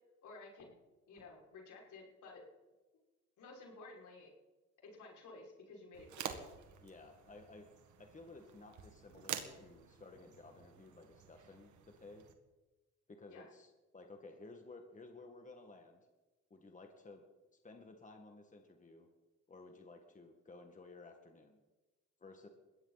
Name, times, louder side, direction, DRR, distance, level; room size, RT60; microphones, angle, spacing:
voice 1, 0.2-0.7 1.1-2.4 3.4-4.3 4.8-6.4 13.3-13.5, left 3 dB, 75° left, -2 dB, 6.0 m, -54 dB
sound 1, 5.9-12.3, right 8 dB, 75° right, 2.0 m, -49 dB
voice 2, 6.8-7.7 8.0-12.3 13.1-16.0 16.5-17.2 17.6-19.1 19.5-21.6 22.2-22.5, left 3 dB, 25° left, 4 dB, 2.0 m, -55 dB
21.0 x 16.0 x 4.2 m, 1.2 s
cardioid pair, 90°, 30 cm